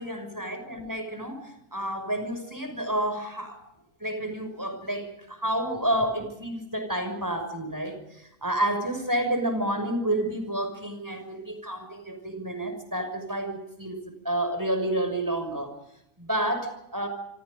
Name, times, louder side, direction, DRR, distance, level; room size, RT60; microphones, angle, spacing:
voice 1, 0.0-3.6 4.0-14.0 14.2-15.7 16.2-17.1, right 1 dB, 10° right, 7 dB, 6.1 m, -30 dB
27.5 x 26.0 x 5.3 m, 0.81 s
omnidirectional pair, 1.6 m